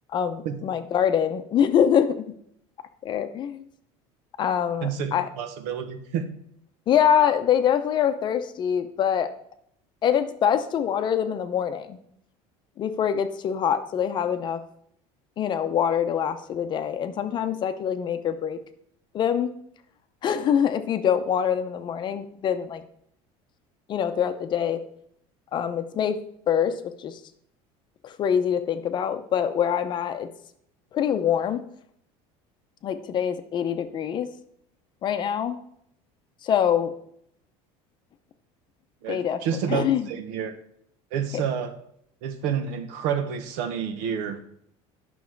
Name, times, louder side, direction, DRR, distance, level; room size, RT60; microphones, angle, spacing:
voice 1, 0.1-2.3 3.0-3.7 4.4-5.3 6.9-9.3 10.0-12.0 12.8-14.6 15.4-18.6 19.1-19.5 20.2-22.8 23.9-24.8 25.5-26.2 26.5-27.2 28.0-30.3 30.9-31.6 32.8-34.3 35.0-35.6 36.4-36.9 39.1-39.4 39.7-40.1 41.3-41.4, left 8 dB, 35° left, 9 dB, 0.7 m, -24 dB
voice 2, 4.8-6.3 39.0-40.5 41.1-41.7 42.2-44.4, right 7 dB, 70° right, 9 dB, 1.1 m, -29 dB
9.6 x 6.1 x 4.6 m, 0.70 s
cardioid pair, 140°, 13 cm